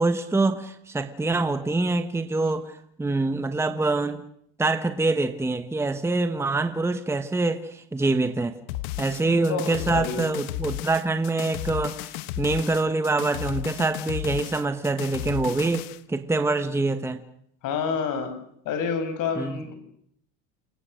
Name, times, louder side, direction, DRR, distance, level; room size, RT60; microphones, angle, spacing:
voice 1, 0.0-4.2 4.6-8.5 9.0-17.2 19.4-19.6, right 3 dB, 5° right, 9 dB, 1.3 m, -25 dB
sound 1, 8.7-16.0, left 16 dB, 80° left, 1.3 m, -34 dB
voice 2, 9.5-10.2 17.6-18.3 18.6-19.7, left 6 dB, 55° left, 8 dB, 6.4 m, -28 dB
29.0 x 22.5 x 6.6 m, 0.69 s
cardioid pair, 140°, 38 cm